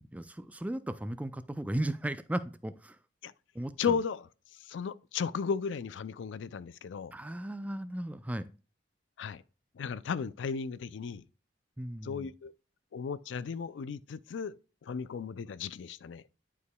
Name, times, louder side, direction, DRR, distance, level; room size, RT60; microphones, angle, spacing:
voice 1, 0.0-3.0 3.5-4.0 7.1-8.5 11.8-12.3, right 1 dB, 10° right, 0.4 m, -36 dB
voice 2, 3.8-4.3 4.7-7.1 9.2-9.4 9.8-11.2 12.0-12.5 12.9-14.5 14.8-16.2, left 6 dB, 80° left, 0.4 m, -35 dB
11.0 x 4.8 x 2.2 m
head